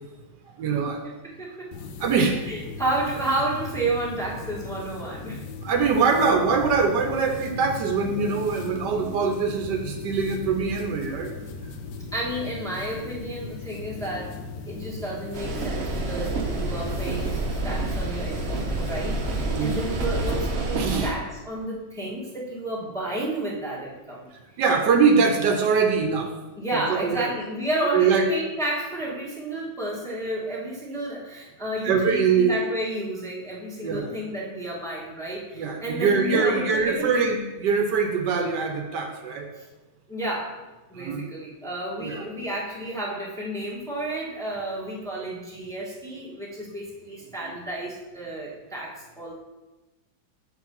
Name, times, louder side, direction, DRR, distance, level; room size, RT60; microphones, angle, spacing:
voice 1, 0.6-1.0 2.0-2.4 5.6-11.3 19.5-19.8 20.8-21.1 24.6-26.3 26.7-27.3 27.9-28.3 31.8-32.6 33.8-34.1 35.5-39.5 40.9-41.3 42.0-42.3 47.4-47.5, right 5 dB, 75° right, 4 dB, 1.3 m, -23 dB
voice 2, 1.4-1.7 2.5-5.4 12.1-14.3 14.6-17.4 17.6-24.3 26.6-37.2 40.1-40.6 40.9-49.4, right 1 dB, ahead, -5 dB, 1.3 m, -31 dB
sound 1, 1.7-20.5, left 4 dB, 75° left, 1.2 m, -38 dB
sound 2, 15.3-21.1, right 2 dB, 45° right, 1.0 m, -28 dB
6.5 x 4.6 x 5.5 m, 1.1 s
omnidirectional pair, 1.9 m